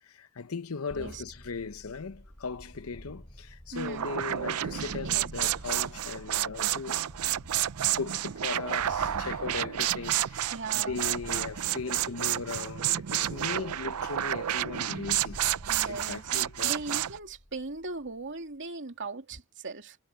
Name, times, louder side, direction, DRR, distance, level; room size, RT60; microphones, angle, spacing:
voice 1, 0.0-15.4 15.8-17.0, left 4 dB, 70° left, 0.9 m, -38 dB
sound 1, 0.9-18.6, equal, 20° left, 4.4 m, -50 dB
voice 2, 3.7-4.1 5.0-5.3 10.5-11.0 15.7-16.3 16.6-20.0, right 3 dB, 60° right, 2.8 m, -39 dB
pneumatic hammer upstairs, 3.8-17.2, right 12 dB, 90° right, 0.5 m, -30 dB
head